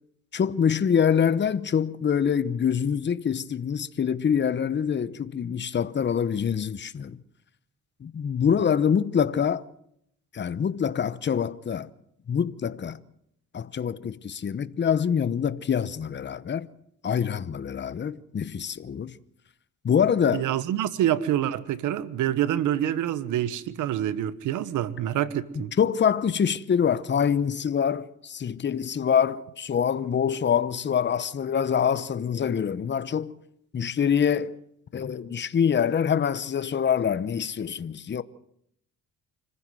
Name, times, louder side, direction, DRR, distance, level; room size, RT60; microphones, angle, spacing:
voice 1, 0.3-7.2 8.0-9.6 10.3-11.9 12.3-13.0 13.5-16.7 17.0-19.2 19.8-20.5 25.5-33.3 33.7-34.5 34.9-38.2, left 7 dB, 35° left, 1.0 m, -25 dB
voice 2, 20.3-25.7, right 11 dB, 85° right, 1.3 m, -26 dB
26.0 x 15.0 x 7.7 m
cardioid pair, 90°, 30 cm